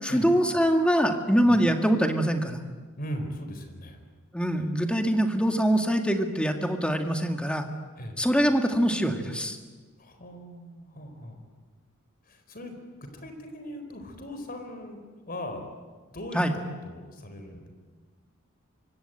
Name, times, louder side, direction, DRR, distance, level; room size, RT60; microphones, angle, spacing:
voice 1, 0.0-2.6 4.3-7.6 8.2-9.6 16.3-16.6, equal, 5° left, 4 dB, 2.1 m, -24 dB
voice 2, 3.0-4.0 4.6-4.7 8.0-8.2 10.0-11.4 12.3-12.8 13.0-15.0 15.3-15.6 16.1-16.4 16.8-17.7, equal, 45° left, 6 dB, 4.4 m, -39 dB
25.5 x 24.0 x 9.1 m, 1.4 s
head